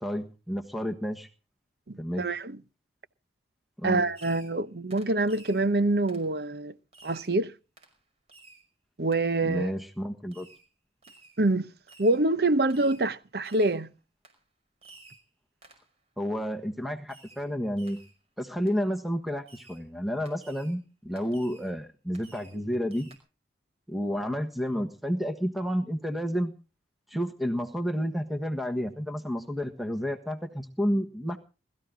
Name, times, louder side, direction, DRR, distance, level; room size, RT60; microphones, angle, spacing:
voice 1, 0.0-1.3 2.0-2.3 3.8-4.1 9.4-10.5 16.2-18.0 18.4-23.1 23.9-26.5 27.1-31.4, equal, ahead, 1.3 m, -30 dB
voice 2, 1.9-2.6 3.8-6.7 7.0-7.5 9.0-9.7 11.4-11.7 12.0-13.9, right 2 dB, 60° right, 0.8 m, -26 dB
Fireworks, 4.1-4.6 4.9-5.7 6.1-6.3 6.9-7.4 7.8-8.0 8.3-8.7 9.1-9.2 10.3-10.7 11.0-11.4 11.9-12.2 12.7-13.1 13.4-13.8 14.2-14.4 14.8-15.3 15.6-15.9 17.1-17.5 17.8-18.2 18.7-18.8 19.5-19.8 20.3-20.8 21.2-21.7 22.1-22.6 22.9-23.2, right 3 dB, 35° right, 5.4 m, -54 dB
21.5 x 14.5 x 3.8 m
head